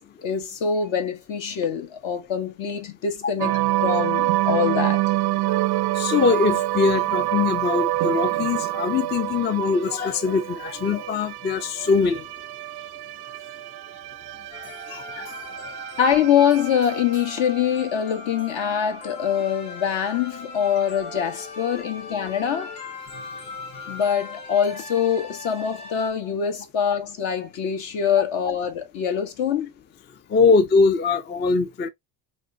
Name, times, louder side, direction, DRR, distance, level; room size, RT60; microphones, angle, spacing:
voice 1, 0.2-5.0 16.0-22.7 23.9-29.7, left 8 dB, 65° left, 1.3 m, -24 dB
sound 1, 3.4-17.9, right 16 dB, 55° right, 0.5 m, -27 dB
voice 2, 5.9-12.3 14.9-15.3 21.7-21.9 30.3-31.9, left 5 dB, 25° left, 0.4 m, -22 dB
sound 2, 14.5-26.1, left 3 dB, 85° left, 1.8 m, -39 dB
4.1 x 2.6 x 2.7 m
supercardioid pair, 80°, 50 cm